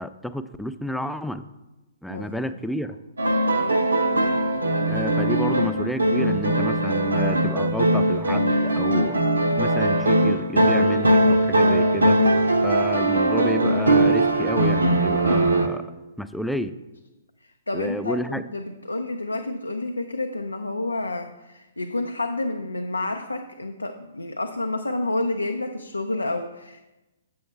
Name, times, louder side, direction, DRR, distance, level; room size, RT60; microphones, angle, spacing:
voice 1, 0.0-1.5 2.0-3.0 4.9-9.2 9.6-12.2 12.6-15.9 16.2-16.8 17.7-18.5, left 1 dB, ahead, 11 dB, 0.3 m, -30 dB
voice 2, 2.1-2.6 3.5-3.8 17.4-26.8, left 2 dB, 85° left, 5 dB, 0.4 m, -29 dB
sound 1, 3.2-15.7, right 1 dB, 80° right, 0.7 m, -20 dB
7.9 x 6.9 x 3.3 m, 1.0 s
figure-of-eight pair, 120°, 0 cm